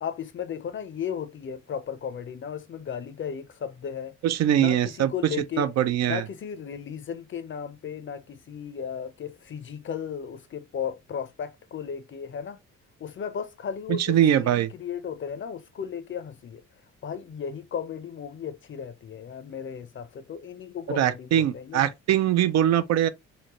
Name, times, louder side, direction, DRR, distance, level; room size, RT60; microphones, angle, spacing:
voice 1, 0.0-4.2 4.5-5.7 6.1-12.6 13.0-16.6 17.0-21.8, left 7 dB, 40° left, 0.5 m, -35 dB
voice 2, 4.2-5.1 5.6-6.2 13.9-14.7 20.9-23.1, right 11 dB, 60° right, 0.4 m, -22 dB
3.8 x 2.1 x 2.9 m
cardioid pair, 90°, 30 cm